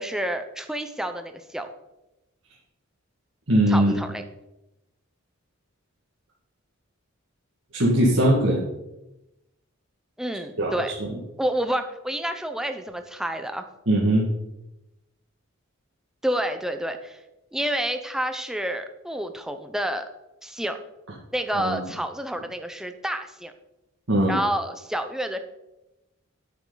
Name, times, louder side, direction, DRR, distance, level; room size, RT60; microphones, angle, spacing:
voice 1, 0.0-1.7 3.7-4.2 10.2-10.9 11.4-13.7 16.2-17.2 17.5-20.1 20.4-20.8 21.3-23.5 24.3-25.4, right 1 dB, ahead, 7 dB, 0.7 m, -29 dB
voice 2, 3.5-4.0 7.7-8.6 10.6-10.7 11.0-11.1 13.9-14.3 21.5-21.8 24.1-24.4, right 1 dB, 65° right, -6 dB, 2.0 m, -20 dB
10.5 x 8.8 x 4.0 m, 0.95 s
head